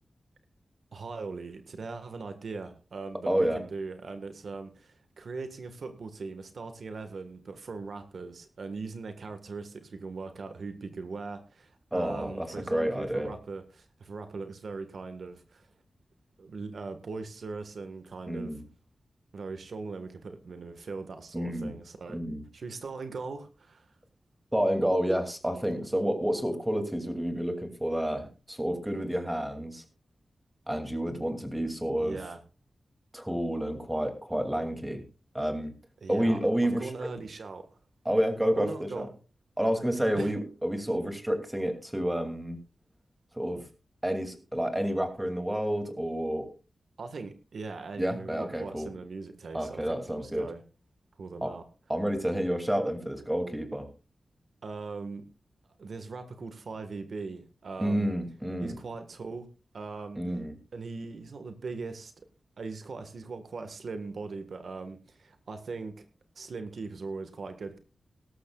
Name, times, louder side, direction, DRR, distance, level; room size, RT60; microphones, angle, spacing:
voice 1, 0.9-15.7 16.4-18.6 19.3-22.2 22.5-23.9 32.0-32.4 36.0-36.4 36.8-37.7 38.6-39.1 40.1-40.3 47.0-50.6 51.2-51.6 54.6-55.2 55.8-58.1 58.6-59.5 59.7-60.2 60.7-62.1 62.6-66.0 66.3-67.8, right 4 dB, 75° right, 8 dB, 1.5 m, -40 dB
voice 2, 3.3-3.6 11.9-13.3 18.3-18.6 21.3-21.7 22.1-22.4 24.5-29.8 30.7-32.2 33.1-35.0 35.3-35.7 36.1-37.1 38.0-39.1 39.6-42.6 43.3-43.7 44.0-46.5 48.0-48.9 49.5-50.5 51.4-51.5 51.9-53.9 57.8-58.8 60.2-60.6, equal, 10° right, 5 dB, 2.6 m, -29 dB
18.0 x 13.5 x 2.4 m, 0.32 s
wide cardioid pair, 90°, 0 cm